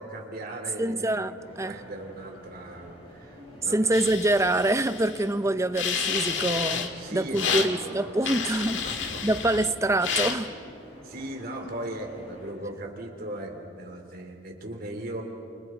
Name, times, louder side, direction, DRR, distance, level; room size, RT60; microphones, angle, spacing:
voice 1, 0.0-3.9 4.4-4.6 7.0-9.3 11.0-15.2, right 1 dB, 50° right, 2 dB, 3.4 m, -38 dB
voice 2, 0.8-1.7 3.7-8.8 9.2-10.5, right 1 dB, 15° right, 11 dB, 0.7 m, -25 dB
sound 1, 1.4-12.5, equal, 30° left, 6.5 m, -47 dB
sound 2, 3.9-5.2 5.7-6.9 7.3-7.7 8.2-9.7 10.0-10.4, left 6 dB, 70° left, 1.8 m, -30 dB
30.0 x 28.5 x 4.6 m, 2.5 s
head